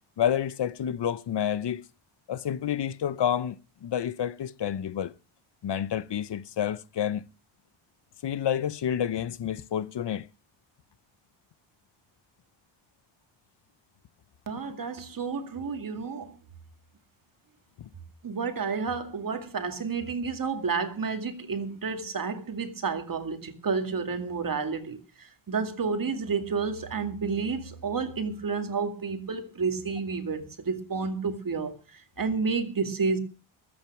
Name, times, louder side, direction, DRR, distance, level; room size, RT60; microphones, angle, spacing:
voice 1, 0.2-1.8 2.3-5.1 5.6-7.2 8.2-10.3 17.8-17.9, left 9 dB, 55° left, 0.8 m, -29 dB
voice 2, 14.5-16.3 18.2-31.7 32.2-33.2, right 5 dB, 40° right, 2.2 m, -30 dB
20.0 x 8.9 x 6.0 m
wide cardioid pair, 175°, 49 cm